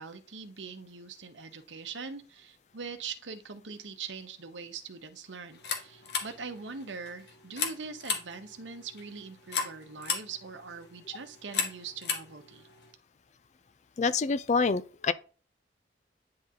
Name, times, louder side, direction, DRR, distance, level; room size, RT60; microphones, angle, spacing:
voice 1, 0.0-12.7, right 5 dB, 80° right, 0.9 m, -42 dB
sound 1, 5.5-12.9, left 6 dB, 65° left, 1.3 m, -37 dB
voice 2, 14.0-15.1, left 4 dB, 40° left, 0.4 m, -26 dB
9.6 x 3.8 x 2.7 m
head